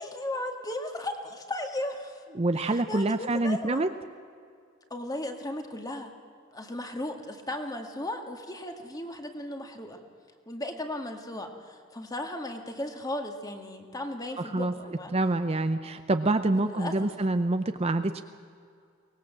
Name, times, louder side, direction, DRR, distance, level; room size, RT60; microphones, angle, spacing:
voice 1, 0.0-2.2 2.6-3.8 4.9-6.1 6.5-10.0 10.5-15.1 16.5-17.1, left 1 dB, 15° left, 4 dB, 1.9 m, -36 dB
voice 2, 2.3-3.9 14.4-14.7 15.1-18.2, right 2 dB, 30° right, 9 dB, 0.6 m, -26 dB
23.5 x 19.0 x 7.5 m, 2.3 s
head